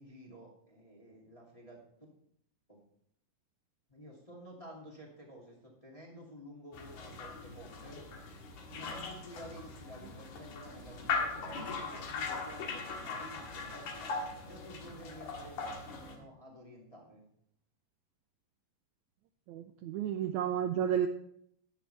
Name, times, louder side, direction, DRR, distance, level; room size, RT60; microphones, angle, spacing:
voice 1, 0.0-1.8 2.7-2.8 3.9-8.0 8.7-13.9 14.4-17.2, equal, 10° left, -3 dB, 2.0 m, -52 dB
sound 1, 6.7-16.2, left 4 dB, 70° left, 2.9 m, -40 dB
voice 2, 19.5-21.1, right 9 dB, 80° right, 7 dB, 1.7 m, -32 dB
13.0 x 10.0 x 3.4 m, 0.68 s
omnidirectional pair, 3.8 m